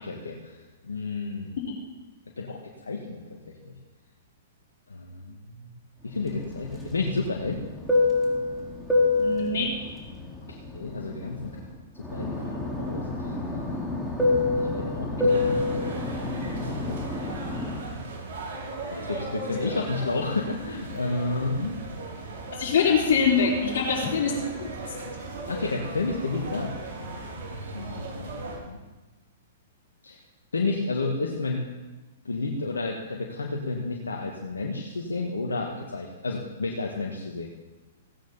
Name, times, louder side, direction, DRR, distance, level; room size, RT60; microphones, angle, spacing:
voice 1, 0.0-1.6 2.4-3.2 3.7-3.8 4.9-5.7 6.0-7.6 10.5-11.6 12.1-13.4 13.9-14.0 14.8-17.0 17.9-18.0 18.9-21.8 25.5-26.7 27.7-28.8 30.0-30.2 30.5-31.7 32.3-37.5, left 3 dB, 85° left, -1 dB, 1.9 m, -31 dB
Fixed-wing aircraft airplane, 6.3-11.7 12.0-17.8, left 3 dB, ahead, 3.3 m, -27 dB
voice 2, 9.2-9.7 22.6-24.7, left 5 dB, 60° left, -5 dB, 4.1 m, -23 dB
sound 1, 15.3-28.6, right 2 dB, 55° right, 6.1 m, -37 dB
16.5 x 9.3 x 5.8 m, 1.1 s
hypercardioid pair, 120°, 0 cm